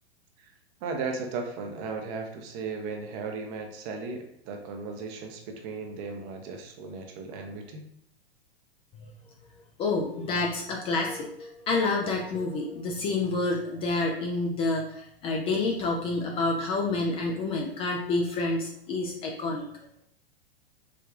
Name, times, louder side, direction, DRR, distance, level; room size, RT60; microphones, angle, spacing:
voice 1, 0.8-7.8, right 4 dB, 35° right, 4 dB, 0.7 m, -36 dB
voice 2, 9.8-19.7, left 3 dB, 20° left, 0 dB, 0.3 m, -28 dB
4.7 x 2.3 x 2.3 m, 0.70 s
hypercardioid pair, 110°, 31 cm